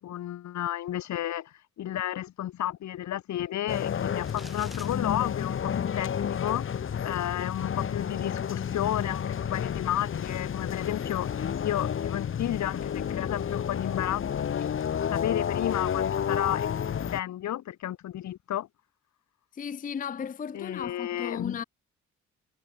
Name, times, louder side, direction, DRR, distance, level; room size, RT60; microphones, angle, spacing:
voice 1, 0.0-14.7 15.1-18.7 20.5-21.6, left 12 dB, 70° left, 1.4 m, -32 dB
sound 1, 3.7-17.2, left 8 dB, 45° left, 1.1 m, -31 dB
sound 2, 4.2-4.9, equal, ahead, 1.5 m, -47 dB
voice 2, 19.5-21.6, left 7 dB, 25° left, 0.6 m, -35 dB
cardioid pair, 90°, 30 cm